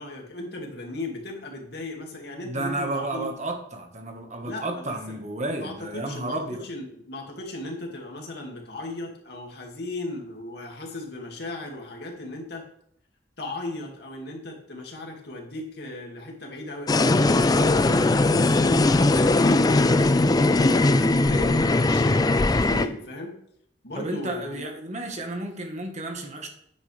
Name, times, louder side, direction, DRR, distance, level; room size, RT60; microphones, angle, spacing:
voice 1, 0.0-3.3 4.4-5.2 5.5-12.7 13.4-20.1 20.5-23.4 23.8-24.7, left 2 dB, 65° left, 0 dB, 2.3 m, -36 dB
voice 2, 2.4-6.6 24.0-26.5, right 2 dB, 40° right, 4 dB, 1.4 m, -32 dB
sound 1, 16.9-22.9, left 2 dB, 20° left, 0.4 m, -20 dB
9.6 x 8.8 x 3.4 m, 0.70 s
head